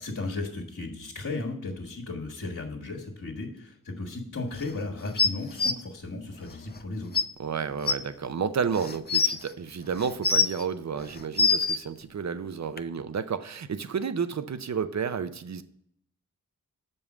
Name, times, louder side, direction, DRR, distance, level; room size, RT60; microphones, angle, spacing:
voice 1, 0.0-7.1, left 3 dB, 60° left, -4 dB, 1.7 m, -35 dB
sound 1, 5.2-5.7 6.8-6.9 7.1-7.2 7.9-8.0 8.7-9.4 10.0-10.6 11.1-11.8 12.8-12.9, left 4 dB, 30° left, 0.6 m, -23 dB
voice 2, 7.4-15.6, right 6 dB, 55° right, 12 dB, 0.7 m, -31 dB
6.8 x 5.5 x 6.1 m, 0.69 s
cardioid pair, 50°, 33 cm